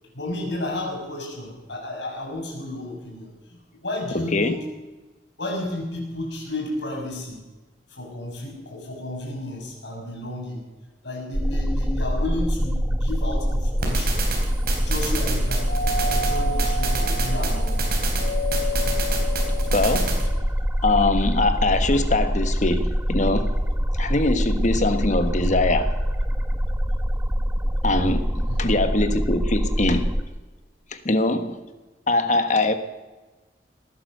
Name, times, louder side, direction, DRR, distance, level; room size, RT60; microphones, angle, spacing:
voice 1, 0.1-4.7 5.4-7.4 7.9-10.6 11.0-14.2 14.8-17.8 28.5-28.7, left 1 dB, 90° left, 6.4 m, -32 dB
voice 2, 4.1-4.5 19.7-20.2 20.8-23.5 24.0-25.9 27.8-30.1 30.9-31.6 32.1-32.7, left 2 dB, 45° left, 1.3 m, -22 dB
sound 1, 11.3-30.2, equal, 10° right, 1.0 m, -24 dB
sound 2, 13.8-20.2, right 4 dB, 60° right, 4.2 m, -31 dB
Doorbell, 15.7-20.5, left 1 dB, 70° left, 1.4 m, -32 dB
19.0 x 11.0 x 6.8 m
head